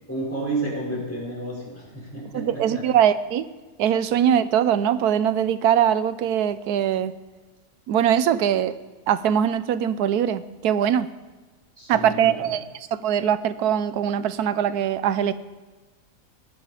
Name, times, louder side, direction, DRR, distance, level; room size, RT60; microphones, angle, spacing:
voice 1, 0.1-2.8 11.8-12.5, right 2 dB, 10° left, -5 dB, 4.8 m, -31 dB
voice 2, 2.3-3.5 3.8-7.1 7.9-8.7 9.1-11.1 11.9-12.6 12.9-15.3, right 9 dB, 90° right, 14 dB, 1.2 m, -22 dB
19.0 x 8.9 x 4.9 m, 1.3 s
omnidirectional pair, 1.6 m